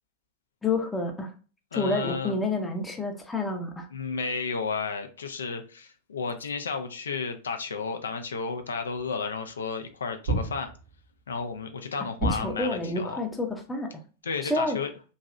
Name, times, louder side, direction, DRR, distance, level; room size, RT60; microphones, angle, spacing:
voice 1, 0.6-1.3 1.7-3.9 12.2-13.9 14.4-14.8, left 2 dB, 10° left, 2 dB, 0.6 m, -29 dB
voice 2, 1.7-2.4 3.9-10.7 11.3-13.2 14.2-14.9, left 5 dB, 70° left, 6 dB, 0.4 m, -32 dB
sound 1, 10.2-11.1 12.2-12.9, right 2 dB, 65° right, 0.7 m, -30 dB
3.0 x 2.7 x 2.4 m, 0.35 s
figure-of-eight pair, 90°, 0 cm